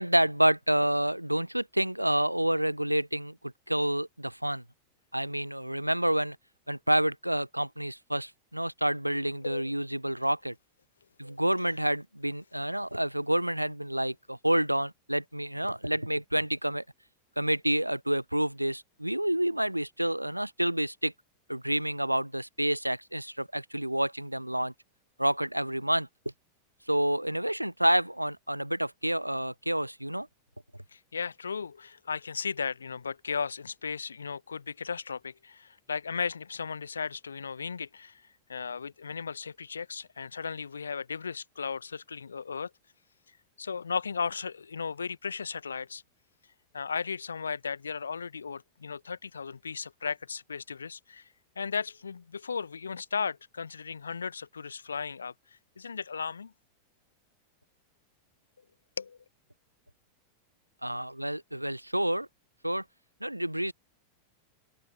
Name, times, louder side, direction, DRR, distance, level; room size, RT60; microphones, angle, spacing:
voice 1, 0.0-4.6 5.1-6.4 6.7-10.5 11.2-16.8 17.4-21.1 21.5-24.7 25.2-26.1 26.9-30.3 60.8-62.3 62.6-62.8 63.2-63.7, right 1 dB, 90° right, 0.8 m, -28 dB
voice 2, 30.9-38.2 38.5-42.7 43.6-46.0 46.7-51.3 51.6-55.3 55.8-56.5 59.0-59.2, left 5 dB, 75° left, 1.0 m, -35 dB
figure-of-eight pair, 90°, 0 cm